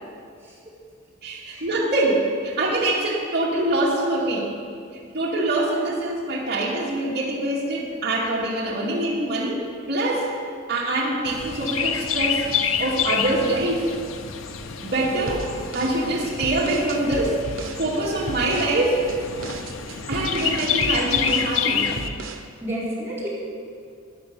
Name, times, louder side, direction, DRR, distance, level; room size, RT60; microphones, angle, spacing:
voice 1, 1.2-4.5 5.1-9.6 9.9-10.3 10.7-12.5 12.8-13.9 14.8-17.4 17.8-19.0 19.9-21.9, right 2 dB, 55° right, -5 dB, 2.3 m, -24 dB
Chirp tweet, 11.2-22.1, left 7 dB, 85° left, 0.8 m, -28 dB
sound 1, 15.3-17.8 18.3-18.8 19.1-21.6 22.0-22.5, right 3 dB, 90° right, 1.0 m, -35 dB
voice 2, 22.6-23.3, equal, 10° right, -9 dB, 4.3 m, -31 dB
13.5 x 9.8 x 6.7 m, 2.3 s
head